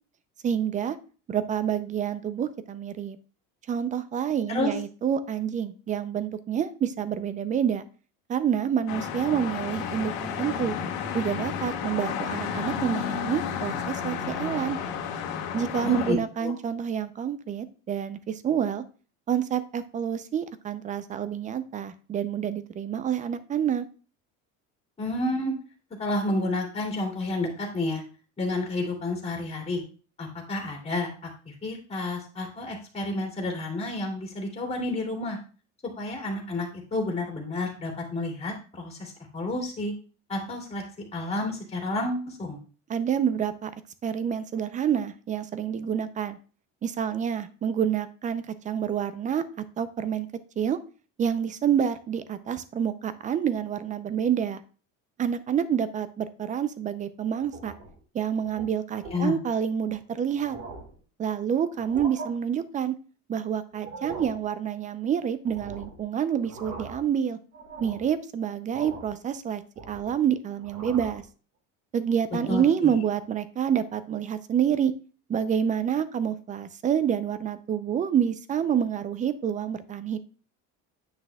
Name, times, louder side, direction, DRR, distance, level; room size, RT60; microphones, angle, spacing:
voice 1, 0.4-1.0 1.3-3.2 3.7-7.8 8.3-10.1 10.4-10.8 11.1-14.8 15.5-18.8 19.3-23.9 42.9-43.7 44.0-46.4 46.8-49.4 49.8-50.3 50.6-50.8 51.2-54.6 55.2-57.7 58.1-60.6 61.2-63.0 63.3-67.4 67.8-69.6 69.9-71.2 71.9-74.9 75.3-80.2, right 8 dB, 20° right, 13 dB, 0.4 m, -28 dB
sound 1, 8.9-16.1, left 7 dB, 85° left, 1.5 m, -32 dB
voice 2, 15.8-16.5 25.0-25.5 26.0-28.0 28.4-29.8 30.2-31.1 31.4-35.4 36.0-39.9 40.3-40.8 41.1-42.6 59.0-59.4 72.5-72.9, left 2 dB, 15° left, 0 dB, 2.6 m, -30 dB
sound 2, 57.4-58.0 58.4-58.6 59.0-59.3 59.9-60.0 60.3-61.0 61.7-62.3 63.7-64.4 65.5-66.0 66.4-67.1 67.5-68.1 68.7-69.2 69.5-70.2 70.6-71.2, right 4 dB, 45° right, 1.7 m, -41 dB
9.7 x 6.0 x 2.2 m, 0.38 s
cardioid pair, 140°, 35 cm